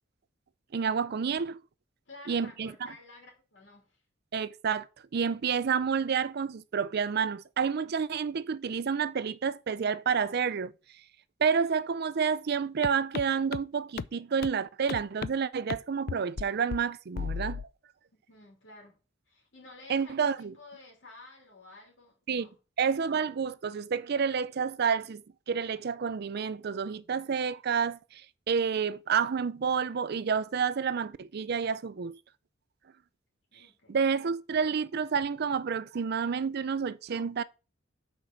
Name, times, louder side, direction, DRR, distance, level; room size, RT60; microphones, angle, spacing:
voice 1, 0.7-1.6 2.3-2.9 4.3-4.9 5.1-10.7 11.4-17.6 19.9-20.5 22.3-22.5 22.8-28.2 28.5-32.2 33.9-37.4, right 6 dB, 55° right, 0.5 m, -29 dB
voice 2, 2.1-4.0 18.1-19.0 19.3-22.6 33.5-34.1, left 2 dB, 70° left, 2.9 m, -52 dB
sound 1, 12.8-12.9 13.1-13.2 13.5-13.6 14.0-14.1 14.4-14.5 14.9-15.3 15.7-15.8 16.1-16.4 16.7-16.8 17.2-17.6, left 6 dB, 50° left, 0.3 m, -33 dB
6.2 x 4.6 x 6.5 m
head